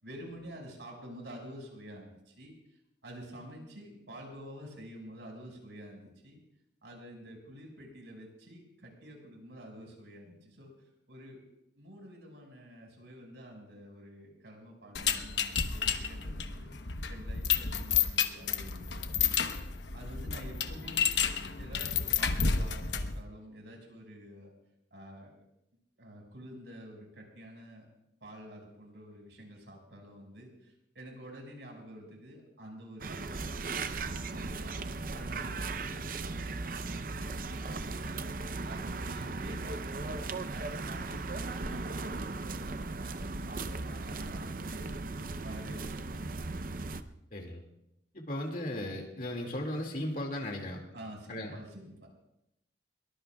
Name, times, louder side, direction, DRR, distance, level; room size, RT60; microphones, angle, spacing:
voice 1, 0.0-6.4 6.8-10.7 11.1-11.4 11.8-16.7 17.1-19.6 19.9-21.0 21.6-24.5 24.9-25.3 26.0-27.9 28.2-33.7 34.0-34.8 35.1-38.2 38.6-44.9 45.4-46.4 50.9-52.1, equal, 75° right, 0 dB, 5.5 m, -49 dB
sound 1, 14.9-23.2, left 6 dB, 70° left, 1.0 m, -31 dB
sound 2, 33.0-47.0, right 3 dB, 50° right, 0.7 m, -37 dB
voice 2, 47.3-47.6 48.1-50.8 51.3-51.6, left 1 dB, 50° left, 1 dB, 2.2 m, -36 dB
22.5 x 20.0 x 2.3 m, 0.82 s
head